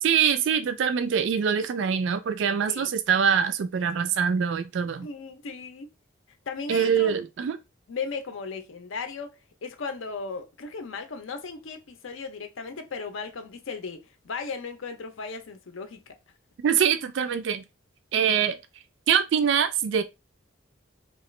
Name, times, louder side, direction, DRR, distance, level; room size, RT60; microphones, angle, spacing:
voice 1, 0.0-5.1 6.7-7.6 16.6-17.6 18.1-18.6 19.1-20.0, right 7 dB, 65° right, 0.3 m, -24 dB
voice 2, 5.0-5.9 6.5-7.2 7.9-16.0, left 4 dB, 75° left, 0.5 m, -36 dB
2.9 x 2.4 x 3.0 m
head